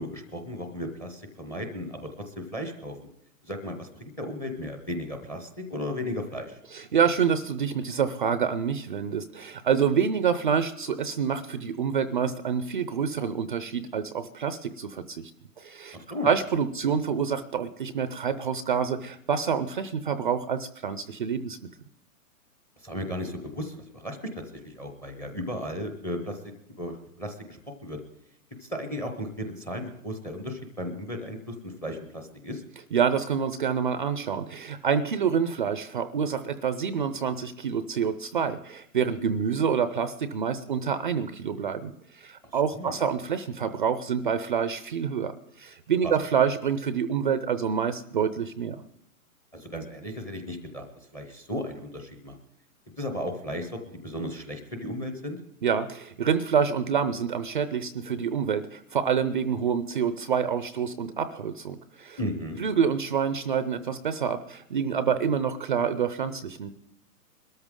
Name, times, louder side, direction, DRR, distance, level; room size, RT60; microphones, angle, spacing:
voice 1, 0.0-3.0 3.4-6.6 15.9-16.3 22.8-26.4 26.8-28.0 28.6-32.6 42.7-42.9 46.0-46.1 49.5-50.8 51.1-52.3 53.0-55.4 62.2-62.6, left 1 dB, 5° left, 6 dB, 0.6 m, -35 dB
voice 2, 6.7-15.3 15.6-16.0 16.2-21.6 32.9-48.8 55.6-62.2 62.6-66.7, right 7 dB, 35° right, 13 dB, 0.5 m, -27 dB
21.5 x 13.5 x 3.7 m, 0.74 s
hypercardioid pair, 160°, 47 cm